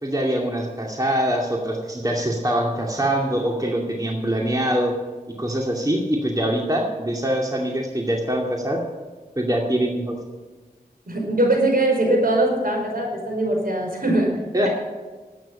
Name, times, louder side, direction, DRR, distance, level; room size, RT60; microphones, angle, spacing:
voice 1, 0.0-4.9 5.4-8.8 9.4-10.2 14.5-14.7, right 1 dB, 25° right, 0 dB, 2.4 m, -23 dB
voice 2, 11.1-14.3, right 1 dB, 65° right, 0 dB, 5.2 m, -21 dB
12.0 x 9.3 x 8.8 m, 1.3 s
cardioid pair, 45°, 16 cm